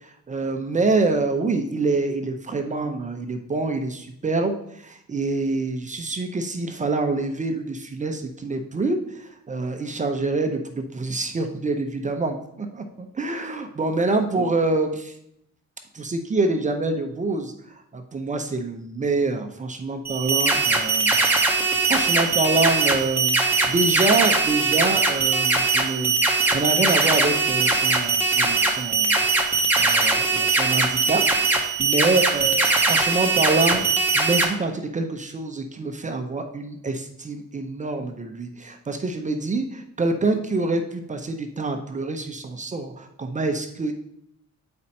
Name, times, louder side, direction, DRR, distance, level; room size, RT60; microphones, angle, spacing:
voice 1, 0.0-12.4 13.2-15.1 15.9-17.5 17.9-29.2 29.8-31.2 31.5-33.8 34.1-43.9, right 3 dB, 25° right, 5 dB, 0.5 m, -26 dB
sound 1, 20.0-34.4, right 3 dB, 5° right, 0.9 m, -21 dB
8.5 x 4.3 x 4.2 m, 0.75 s
wide cardioid pair, 180°, 29 cm